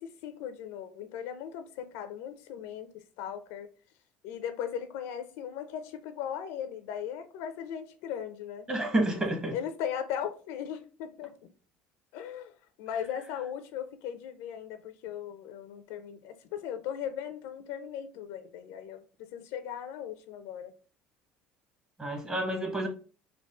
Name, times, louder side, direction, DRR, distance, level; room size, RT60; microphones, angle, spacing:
voice 1, 0.0-3.7 4.2-8.7 9.5-11.3 12.1-20.7, left 9 dB, 80° left, 0.6 m, -38 dB
voice 2, 8.7-9.5 22.0-22.9, right 1 dB, 20° right, 1.1 m, -29 dB
3.9 x 2.4 x 3.5 m
cardioid pair, 120°, 4 cm